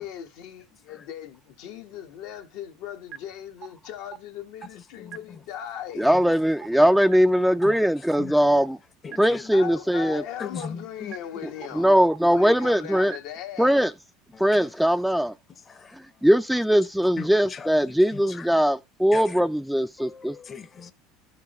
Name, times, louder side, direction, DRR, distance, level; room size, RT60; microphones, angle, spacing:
voice 1, 0.0-6.1 9.5-11.9 12.3-13.8, left 10 dB, 70° left, 1.2 m, -38 dB
sound 1, 3.1-3.2 3.6-3.7 4.1-4.2 4.6-4.7 5.1-5.2 5.6-5.7 6.1-6.2 6.6-6.7 7.1-7.2 7.6-7.7 8.1-8.2 8.6-8.7 9.1-9.2 9.6-9.7 10.1-10.2 10.6-10.7 11.1-11.2 11.6-11.7 12.1-12.2 12.6-12.7 13.1-13.2 13.6-13.7, right 11 dB, 50° right, 0.7 m, -38 dB
voice 2, 4.9-5.4 6.1-6.2 7.6-7.8 8.2-8.4 9.0-9.5 10.4-11.2 12.4-12.5 14.3-14.7 15.7-16.0 17.2-17.7 18.1-18.5 19.1-19.4 20.0-20.9, left 6 dB, 30° left, 0.8 m, -39 dB
voice 3, 6.0-8.8 9.1-10.2 11.7-13.1 13.6-13.9 14.4-15.3 15.9-20.4, equal, ahead, 0.4 m, -21 dB
13.0 x 4.7 x 3.0 m
supercardioid pair, 105°, 0 cm